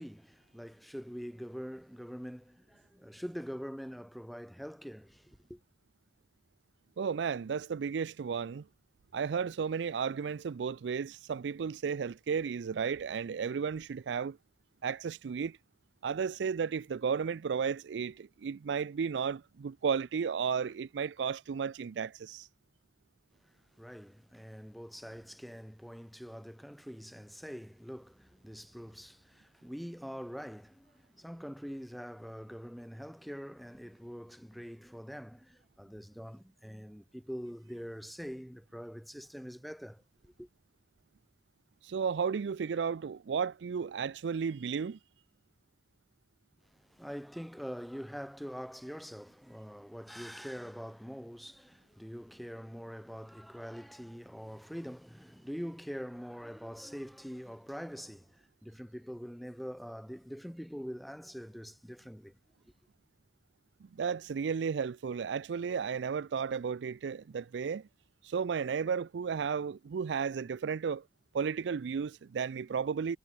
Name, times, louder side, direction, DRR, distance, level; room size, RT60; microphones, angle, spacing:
voice 1, 0.0-5.6 23.8-40.5 46.7-62.4, equal, ahead, 1.9 m, -44 dB
voice 2, 7.0-8.6 9.1-14.4 14.8-15.6 16.0-22.5 41.8-45.0 63.9-67.9 68.2-71.0 71.3-73.2, right 6 dB, 85° right, 0.4 m, -33 dB
head